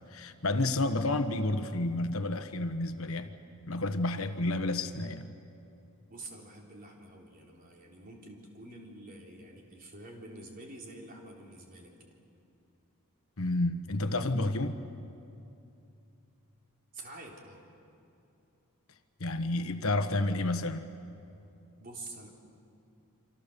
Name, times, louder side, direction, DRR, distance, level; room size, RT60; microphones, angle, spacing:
voice 1, 0.1-3.3 3.7-5.3 13.4-14.9 19.2-20.9, left 2 dB, 65° left, 1.2 m, -30 dB
voice 2, 6.1-12.1 16.9-17.6 21.8-22.3, right 2 dB, 40° right, 3.7 m, -47 dB
28.0 x 25.5 x 6.9 m
head